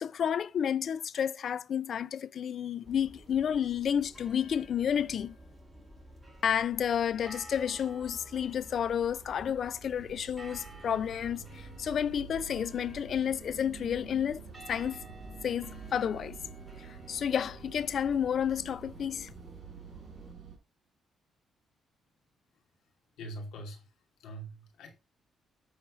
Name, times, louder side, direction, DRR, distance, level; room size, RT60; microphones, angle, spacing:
voice 1, 0.0-5.4 6.4-14.4 14.7-15.0 15.4-16.4 16.8-19.3, left 8 dB, 60° left, 0.5 m, -31 dB
sound 1, 2.8-20.3, equal, 15° right, 3.8 m, -51 dB
sound 2, 7.7-20.6, right 8 dB, 60° right, 4.9 m, -49 dB
voice 2, 23.2-23.8 24.2-24.9, right 1 dB, 85° left, 2.6 m, -42 dB
10.5 x 4.3 x 5.4 m
cardioid pair, 90°, 0 cm